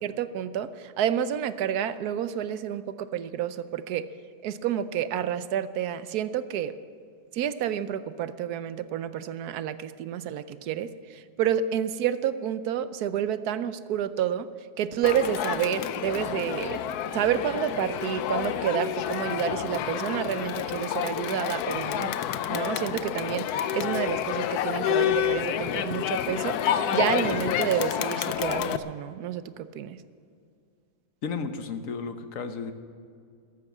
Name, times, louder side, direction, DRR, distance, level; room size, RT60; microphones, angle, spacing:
voice 1, 0.0-4.0 4.4-6.7 7.3-14.5 14.8-16.8 17.1-22.2 22.5-30.0, right 9 dB, 80° right, 13 dB, 1.2 m, -29 dB
Crowd, 15.0-28.8, left 10 dB, 80° left, 1.2 m, -29 dB
voice 2, 31.2-32.7, left 5 dB, 60° left, 9 dB, 1.3 m, -33 dB
13.5 x 12.5 x 7.3 m, 2.3 s
omnidirectional pair, 1.6 m